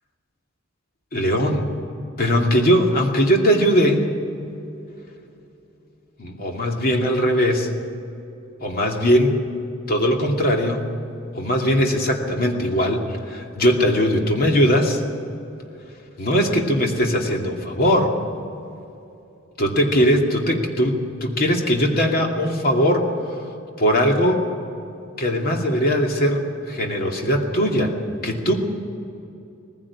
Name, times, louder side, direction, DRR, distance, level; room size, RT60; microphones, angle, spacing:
voice 1, 1.1-1.7 2.2-4.0 6.2-7.7 8.6-9.4 9.9-10.9 11.3-15.0 16.2-18.1 19.6-23.4 23.8-24.4 25.2-27.9 28.2-28.5, equal, 45° left, 1 dB, 2.6 m, -20 dB
19.0 x 16.0 x 8.6 m, 2.7 s
head